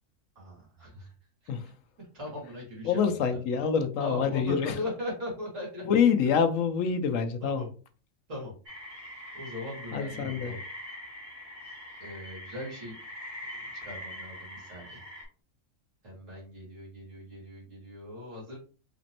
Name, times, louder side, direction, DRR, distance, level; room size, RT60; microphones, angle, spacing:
voice 1, 0.4-1.1 2.1-3.4 4.0-5.8 7.4-7.7 8.3-8.5 9.3-10.6 12.0-12.9 13.8-15.0 16.0-18.6, left 1 dB, 70° right, -4 dB, 2.5 m, -39 dB
voice 2, 2.8-4.7 5.8-7.6 9.9-10.5, left 6 dB, 80° left, 9 dB, 1.0 m, -26 dB
sound 1, 8.6-15.2, left 1 dB, 35° right, 1.8 m, -43 dB
4.2 x 3.0 x 2.8 m, 0.38 s
omnidirectional pair, 1.4 m